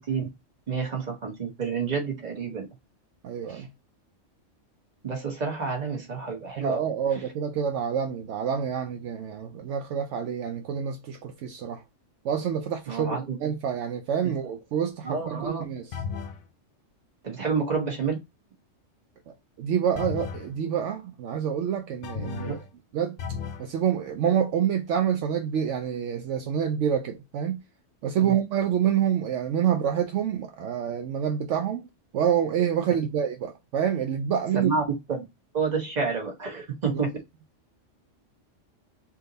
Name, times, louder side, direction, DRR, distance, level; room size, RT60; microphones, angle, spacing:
voice 1, 0.7-2.6 3.5-3.6 5.0-6.8 7.1-7.2 12.9-13.4 14.2-14.3 15.0-15.6 17.2-18.2 22.4-22.5 28.2-28.3 34.5-34.8 35.1-35.2 35.5-37.1, right 5 dB, 35° right, 1.2 m, -29 dB
voice 2, 3.2-3.7 6.6-11.8 12.2-15.9 19.6-22.6 22.9-23.2 23.6-27.6 28.0-31.8 32.1-34.7, right 8 dB, 75° right, 0.9 m, -27 dB
sound 1, 15.9-16.4 20.0-20.5 22.0-22.7 23.2-23.7, left 5 dB, 55° left, 0.7 m, -34 dB
3.6 x 2.8 x 3.9 m
omnidirectional pair, 1.3 m